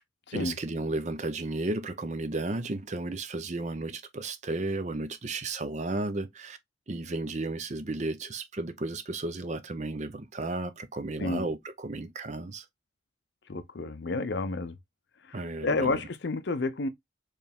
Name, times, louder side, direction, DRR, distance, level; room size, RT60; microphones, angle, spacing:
voice 1, 0.3-6.6 6.9-12.6 15.3-16.0, right 2 dB, 35° right, 0.6 m, -33 dB
voice 2, 13.5-14.7 15.3-16.9, left 3 dB, 60° left, 0.5 m, -30 dB
4.6 x 3.2 x 3.5 m
head